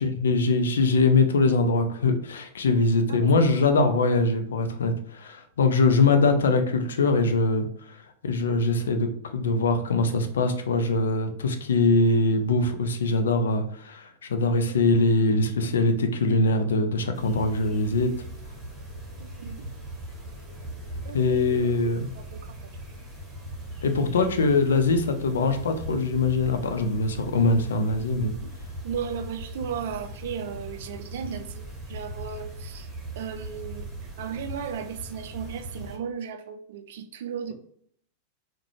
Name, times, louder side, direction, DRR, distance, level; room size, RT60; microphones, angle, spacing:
voice 1, 0.0-18.1 21.1-22.1 23.8-28.3, left 3 dB, 65° left, 6 dB, 0.4 m, -23 dB
voice 2, 3.1-3.5 14.7-14.8 19.2-19.6 21.0-22.7 28.4-28.5 28.8-32.9 33.2-37.5, right 7 dB, 55° right, 8 dB, 0.3 m, -36 dB
sound 1, 17.1-36.0, right 1 dB, 20° right, 1.1 m, -39 dB
3.8 x 2.2 x 3.0 m, 0.66 s
figure-of-eight pair, 90°, 0 cm